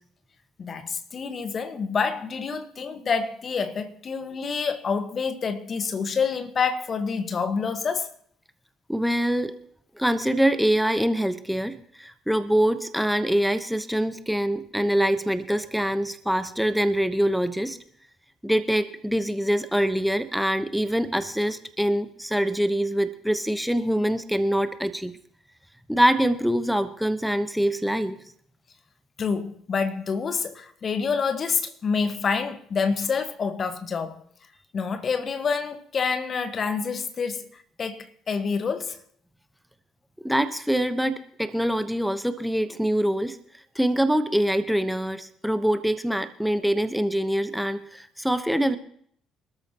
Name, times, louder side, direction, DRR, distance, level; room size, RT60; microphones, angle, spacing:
voice 1, 0.6-8.1 29.2-34.2 34.7-39.0, left 5 dB, 45° left, 1.5 m, -27 dB
voice 2, 8.9-9.6 10.0-17.8 18.4-25.1 25.9-28.2 40.2-43.4 43.7-48.8, equal, ahead, 1.1 m, -24 dB
25.5 x 13.0 x 3.0 m
hypercardioid pair, 50°, 0 cm